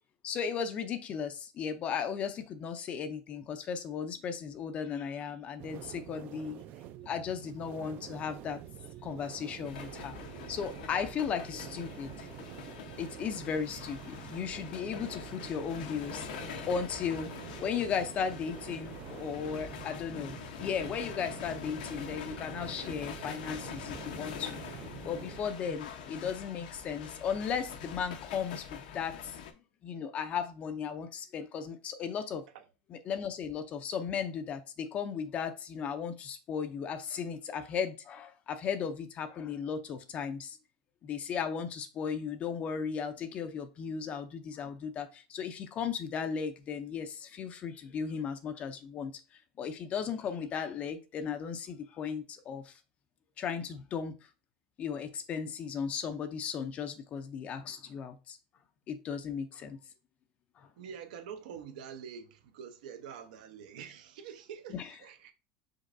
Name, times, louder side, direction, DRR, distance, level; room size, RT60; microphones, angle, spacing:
voice 1, 0.2-6.6 7.0-8.6 9.0-10.1 10.5-12.3 13.0-16.3 16.7-17.3 17.6-24.6 25.0-29.4 29.8-32.4 32.9-40.6 41.0-49.1 49.6-52.7 53.4-54.1 54.8-58.4 58.9-59.8 64.7-64.9, left 7 dB, 30° left, 0.4 m, -36 dB
sound 1, 5.6-25.4, right 11 dB, 40° right, 0.3 m, -47 dB
sound 2, 9.6-29.5, left 7 dB, 85° left, 0.8 m, -45 dB
voice 2, 60.8-65.3, right 7 dB, 80° right, 0.8 m, -46 dB
5.2 x 3.8 x 2.5 m
supercardioid pair, 150°, 4 cm